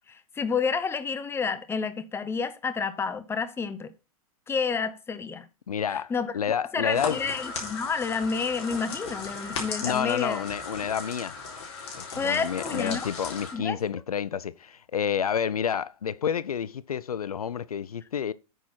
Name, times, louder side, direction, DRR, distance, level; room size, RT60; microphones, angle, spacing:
voice 1, 0.1-3.9 4.5-5.4 5.9-6.3 6.7-10.4 12.2-13.1 13.5-13.8, left 5 dB, 15° left, 0.9 m, -29 dB
voice 2, 5.7-7.2 9.8-11.4 11.9-18.3, left 8 dB, 80° left, 0.4 m, -29 dB
sound 1, 6.9-13.5, left 4 dB, 50° left, 3.9 m, -36 dB
9.0 x 6.2 x 4.3 m
figure-of-eight pair, 100°, 19 cm